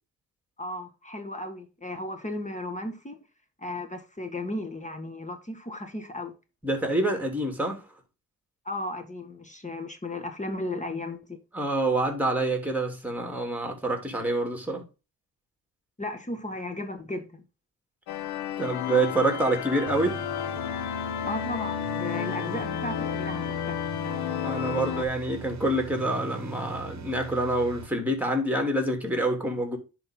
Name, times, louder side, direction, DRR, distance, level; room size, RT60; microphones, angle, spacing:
voice 1, 0.6-3.2 3.6-6.3 8.6-11.4 16.0-17.4 21.2-23.8, left 2 dB, 20° left, 1.7 m, -35 dB
voice 2, 6.6-7.8 11.5-14.8 18.6-20.2 24.4-29.8, right 1 dB, 5° right, 3.2 m, -27 dB
sound 1, 18.1-25.0, left 10 dB, 80° left, 0.9 m, -32 dB
sound 2, 19.9-27.9, right 8 dB, 45° right, 1.1 m, -41 dB
10.5 x 4.5 x 3.8 m
supercardioid pair, 50°, 38 cm